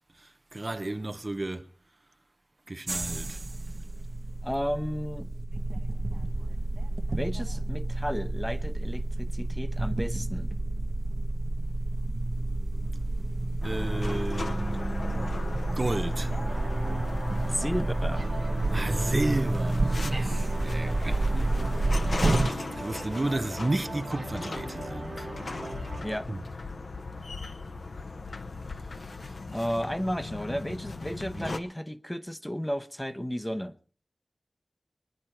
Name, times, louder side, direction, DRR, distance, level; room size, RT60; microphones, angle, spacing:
voice 1, 0.2-1.7 2.7-3.4 13.6-15.3 15.8-16.3 18.7-25.3 26.3-26.4 29.0-29.1 31.3-31.6, right 2 dB, 40° right, 0.8 m, -33 dB
sound 1, 2.9-22.5, right 2 dB, 70° right, 1.2 m, -29 dB
voice 2, 4.4-5.3 7.1-10.5 17.5-18.3 26.0-26.3 29.5-33.8, equal, 10° left, 1.0 m, -33 dB
sound 2, 13.6-31.6, left 3 dB, 80° left, 1.1 m, -38 dB
sound 3, 16.5-26.2, right 3 dB, 85° right, 1.5 m, -41 dB
24.0 x 10.0 x 4.5 m
wide cardioid pair, 60°, 0 cm